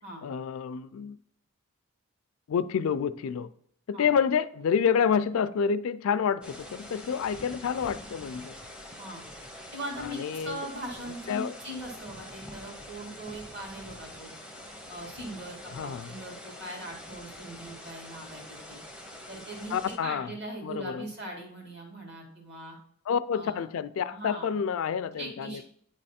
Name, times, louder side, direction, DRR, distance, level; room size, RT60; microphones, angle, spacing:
voice 1, 0.2-1.2 2.5-3.5 3.9-8.5 10.0-10.7 11.3-11.6 15.7-16.2 19.7-20.3 20.6-21.1 23.1-25.6, left 7 dB, 70° left, 0.3 m, -28 dB
sound 1, 6.4-20.0, left 1 dB, 5° right, 0.6 m, -45 dB
voice 2, 9.7-14.3 14.9-18.8 19.3-22.8 23.3-23.7 24.1-24.5 25.2-25.6, right 1 dB, 50° right, 1.7 m, -40 dB
8.8 x 3.2 x 4.2 m
head